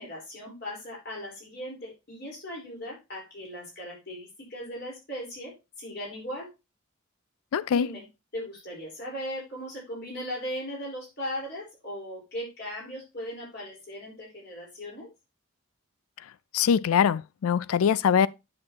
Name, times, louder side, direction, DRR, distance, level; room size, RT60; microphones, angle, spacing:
voice 1, 0.0-6.5 7.7-8.0 8.3-15.1, equal, 50° left, 4.3 m, -38 dB
voice 2, 7.5-7.9 16.5-18.3, left 7 dB, 90° left, 0.4 m, -23 dB
8.6 x 6.4 x 2.9 m
head